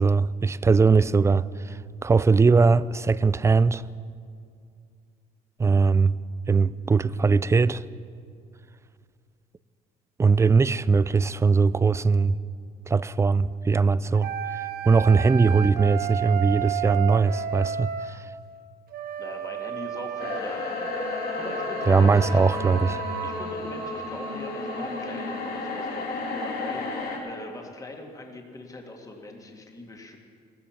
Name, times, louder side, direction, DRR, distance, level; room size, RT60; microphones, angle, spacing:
voice 1, 0.0-3.8 5.6-6.1 6.5-7.8 10.2-12.4 12.9-18.2 21.9-23.0, right 4 dB, 15° right, 0.3 m, -21 dB
sound 1, 14.2-18.1 18.9-23.5, right 9 dB, 65° right, 1.1 m, -33 dB
voice 2, 19.2-22.4 23.2-30.2, left 2 dB, 20° left, 2.0 m, -41 dB
sound 2, 20.2-27.2, left 2 dB, 70° left, 3.2 m, -32 dB
16.0 x 14.0 x 5.9 m
cardioid pair, 110°, 17 cm